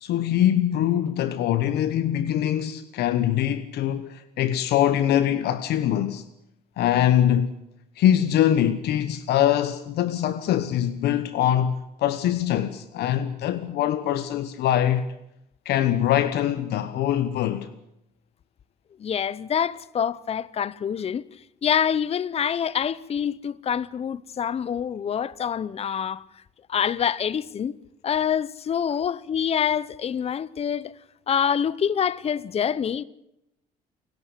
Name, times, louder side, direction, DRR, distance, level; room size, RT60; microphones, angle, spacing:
voice 1, 0.0-6.2 6.8-7.5 8.0-15.1 15.6-17.7, left 11 dB, 75° left, 1.1 m, -23 dB
voice 2, 19.0-21.2 21.6-26.2 26.7-27.8 28.0-30.9 31.3-33.0, left 8 dB, 35° left, 0.8 m, -26 dB
29.0 x 12.0 x 8.4 m
cardioid pair, 110°, 17 cm